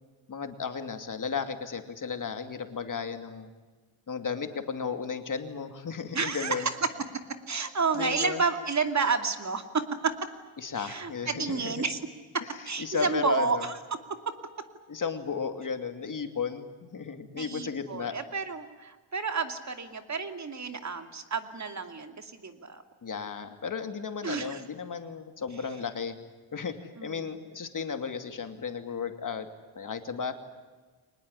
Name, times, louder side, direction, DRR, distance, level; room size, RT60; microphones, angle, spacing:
voice 1, 0.3-3.5 4.1-6.7 7.9-8.4 10.6-11.7 12.8-13.7 14.9-18.2 23.0-26.2 26.5-29.5 29.7-30.3, left 5 dB, 40° left, 7 dB, 2.7 m, -34 dB
voice 2, 6.1-6.8 7.5-10.1 10.8-12.0 12.6-13.8 17.3-22.8 24.2-24.6 27.0-27.4, right 4 dB, 35° right, 7 dB, 2.5 m, -30 dB
24.5 x 20.0 x 10.0 m, 1.4 s
cardioid pair, 115°, 48 cm